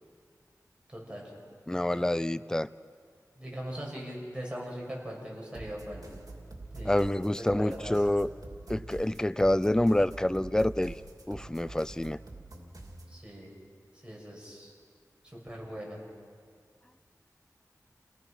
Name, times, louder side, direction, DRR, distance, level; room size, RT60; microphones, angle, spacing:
voice 1, 0.9-1.3 1.7-2.1 3.3-6.1 6.7-7.9 13.1-13.5 13.9-14.7 15.2-16.0, equal, 15° right, -3 dB, 7.3 m, -41 dB
voice 2, 1.7-2.7 6.9-8.3 8.7-11.0 11.3-12.2, left 1 dB, 10° left, 15 dB, 0.5 m, -27 dB
sound 1, 5.5-13.2, right 2 dB, 65° right, 2.9 m, -45 dB
29.5 x 19.0 x 6.1 m, 2.1 s
wide cardioid pair, 70°, 7 cm